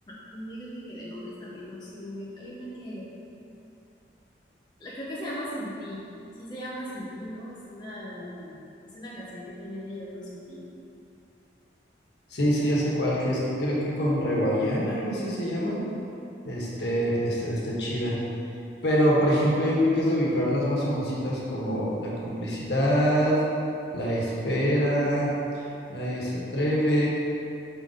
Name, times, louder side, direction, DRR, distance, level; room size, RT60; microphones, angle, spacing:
voice 1, 0.1-3.1 4.8-6.0 6.3-10.7, equal, 25° left, -7 dB, 0.6 m, -38 dB
voice 2, 12.3-15.8 16.4-18.2 18.8-23.4 23.9-27.1, equal, 65° left, -5 dB, 1.3 m, -25 dB
4.9 x 4.0 x 5.0 m, 2.8 s
head